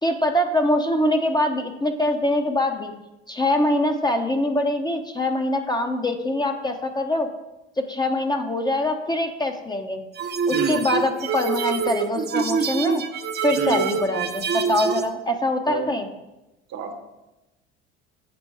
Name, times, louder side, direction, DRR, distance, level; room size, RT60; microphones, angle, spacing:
voice 1, 0.0-2.9 3.3-7.3 7.8-10.0 10.5-13.0 13.4-16.1, left 1 dB, 15° left, 4 dB, 0.8 m, -23 dB
sound 1, 10.2-15.1, right 5 dB, 35° right, 0.7 m, -25 dB
voice 2, 10.5-10.8 13.5-13.8 15.7-15.9 16.7-16.9, right 6 dB, 55° right, 5 dB, 1.2 m, -27 dB
7.7 x 4.4 x 4.7 m, 1.0 s
hypercardioid pair, 65°, 31 cm